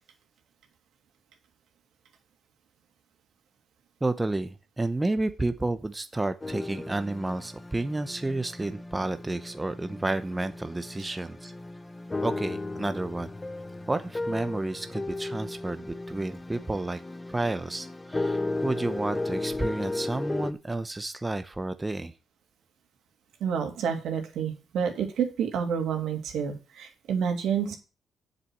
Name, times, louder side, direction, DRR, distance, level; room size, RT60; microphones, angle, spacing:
voice 1, 4.0-11.5 12.2-13.3 13.9-17.0 17.3-22.1, right 2 dB, 15° right, 10 dB, 0.8 m, -31 dB
sound 1, 6.4-20.5, left 2 dB, 20° left, 0.8 m, -35 dB
voice 2, 23.4-27.8, right 7 dB, 80° right, 4 dB, 2.5 m, -29 dB
7.5 x 7.0 x 7.6 m, 0.33 s
cardioid pair, 90°, 0 cm